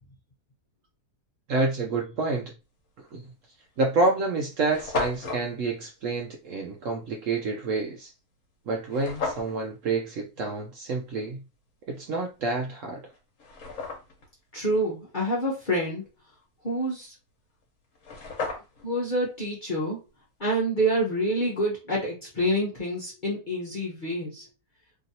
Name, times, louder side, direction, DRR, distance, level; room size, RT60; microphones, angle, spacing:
voice 1, 1.5-2.5 3.0-3.2 3.8-8.1 8.7-11.4 11.9-13.0, right 3 dB, 65° right, 0.8 m, -28 dB
sound 1, 3.1-3.3 4.0-4.1 4.3-4.4 4.6-5.4 8.9-9.5 12.5-12.6 13.1-14.3 17.6-17.7 17.9-18.9, left 4 dB, 55° left, 1.2 m, -33 dB
voice 2, 14.5-16.0 16.6-17.1 18.8-20.0 20.4-24.4, right 1 dB, 40° left, 0.7 m, -27 dB
3.0 x 2.7 x 2.7 m
omnidirectional pair, 1.8 m